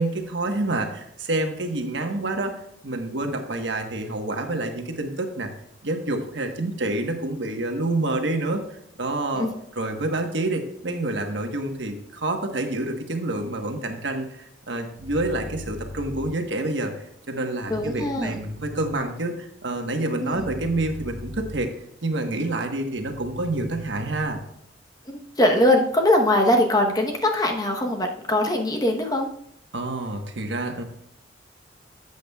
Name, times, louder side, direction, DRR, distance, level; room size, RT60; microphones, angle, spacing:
voice 1, 0.0-2.5 2.8-5.5 5.8-9.5 9.8-21.7 22.0-24.4 29.7-30.8, right 2 dB, 75° right, 4 dB, 1.3 m, -28 dB
sound 1, 15.0-16.3 17.6-19.0 20.3-21.6 23.0-24.3, left 1 dB, 50° right, 2.6 m, -38 dB
voice 2, 17.7-18.4 20.2-20.5 25.1-29.3, left 1 dB, 20° left, 2 dB, 1.0 m, -22 dB
12.0 x 8.1 x 2.3 m, 0.74 s
head